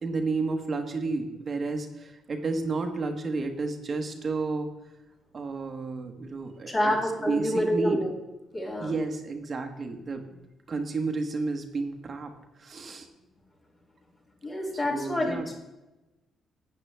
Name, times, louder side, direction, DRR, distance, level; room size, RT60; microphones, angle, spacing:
voice 1, 0.0-4.7 5.3-6.9 7.3-8.0 8.8-10.4 10.7-12.3 12.6-13.1 14.7-15.5, right 3 dB, 40° right, 5 dB, 1.3 m, -31 dB
voice 2, 6.7-8.1 8.5-9.0 14.4-15.5, left 1 dB, 35° left, -3 dB, 2.5 m, -27 dB
11.5 x 8.6 x 3.4 m, 1.0 s
cardioid pair, 90°, 0 cm